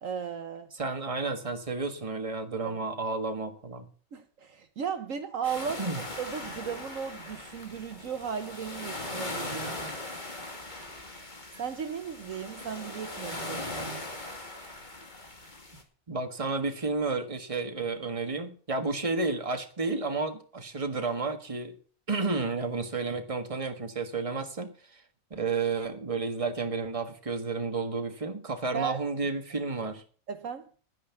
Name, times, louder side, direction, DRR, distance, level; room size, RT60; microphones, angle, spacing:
voice 1, 0.0-0.7 2.6-2.8 4.1-9.8 11.6-14.0 28.7-29.3 30.3-30.7, right 7 dB, 65° right, 9 dB, 1.3 m, -36 dB
voice 2, 0.7-3.9 5.8-6.0 9.8-9.9 16.1-21.7 22.1-25.0 25.3-30.0, right 3 dB, 25° right, 6 dB, 1.6 m, -31 dB
sound 1, 5.4-15.8, left 2 dB, 30° left, 2.3 m, -39 dB
11.0 x 10.0 x 7.1 m, 0.42 s
omnidirectional pair, 1.5 m